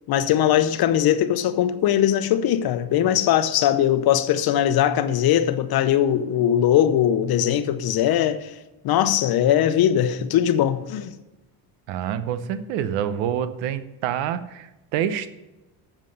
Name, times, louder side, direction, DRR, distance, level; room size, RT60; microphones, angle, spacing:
voice 1, 0.1-8.5 8.8-11.1, left 10 dB, 55° left, 12 dB, 0.9 m, -20 dB
voice 2, 11.9-15.3, right 9 dB, 80° right, 13 dB, 0.9 m, -27 dB
7.6 x 7.2 x 6.5 m, 1.0 s
cardioid pair, 110°, 44 cm